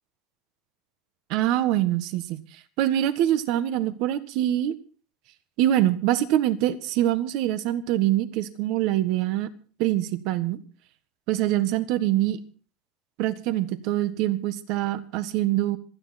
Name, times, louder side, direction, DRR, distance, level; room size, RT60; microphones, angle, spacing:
voice 1, 1.3-2.4 2.8-4.8 5.6-9.5 9.8-10.6 11.3-12.4 13.2-15.8, right 13 dB, 55° right, 12 dB, 1.6 m, -24 dB
26.5 x 9.9 x 4.3 m, 0.40 s
supercardioid pair, 150°, 0 cm